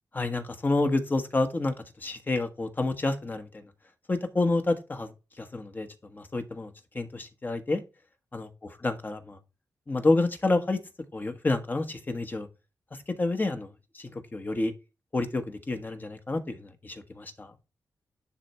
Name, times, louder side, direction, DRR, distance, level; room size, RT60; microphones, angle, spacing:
voice 1, 0.1-1.7 2.0-3.5 4.1-5.1 5.4-7.8 8.3-8.5 8.8-9.4 9.9-10.8 11.1-12.5 13.2-13.7 13.9-14.7 15.1-17.5, left 2 dB, 30° left, 1.2 m, -29 dB
10.0 x 3.5 x 4.3 m
cardioid pair, 75°, 7 cm